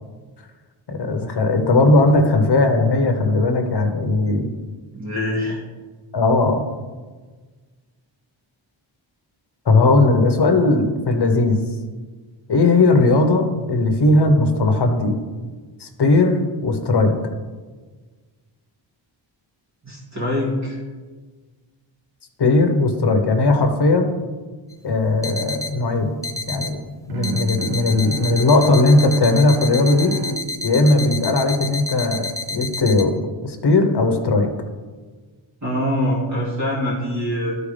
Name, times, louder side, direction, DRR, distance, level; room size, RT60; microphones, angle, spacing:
voice 1, 0.9-4.5 6.1-6.6 9.6-11.6 12.5-15.2 15.8-17.1 22.4-24.1 24.8-26.2 26.5-26.8 27.1-30.1 30.6-33.1 33.4-34.5, left 2 dB, 55° left, 5 dB, 1.2 m, -17 dB
voice 2, 4.9-5.6 19.8-20.8 35.6-37.6, left 1 dB, 35° right, -6 dB, 1.9 m, -24 dB
sound 1, 24.7-24.8 25.2-25.7 26.2-26.7 27.2-33.0, left 3 dB, 5° left, 0.5 m, -30 dB
Bowed string instrument, 27.1-32.2, right 5 dB, 50° right, 0.5 m, -34 dB
14.0 x 4.7 x 3.4 m, 1.4 s
wide cardioid pair, 130°, 48 cm